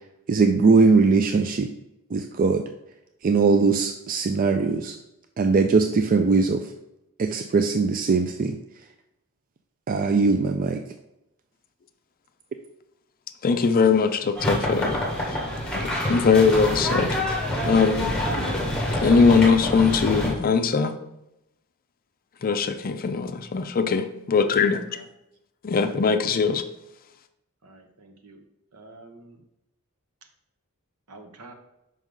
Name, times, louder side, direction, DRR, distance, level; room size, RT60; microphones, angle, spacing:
voice 1, 0.3-1.7 2.1-2.6 3.2-5.0 5.4-6.7 7.2-8.6 9.9-10.8, right 4 dB, 40° right, 6 dB, 0.4 m, -20 dB
voice 2, 13.4-15.4 15.7-17.2 17.7-18.1 19.0-21.0 22.4-25.0 25.6-26.6, left 5 dB, 40° left, 8 dB, 0.5 m, -21 dB
sound 1, 14.4-20.3, left 1 dB, 5° left, 1.5 m, -26 dB
voice 3, 27.6-28.4 28.7-29.4 31.1-31.5, right 2 dB, 75° right, 5 dB, 1.0 m, -48 dB
6.2 x 5.4 x 3.7 m, 0.88 s
head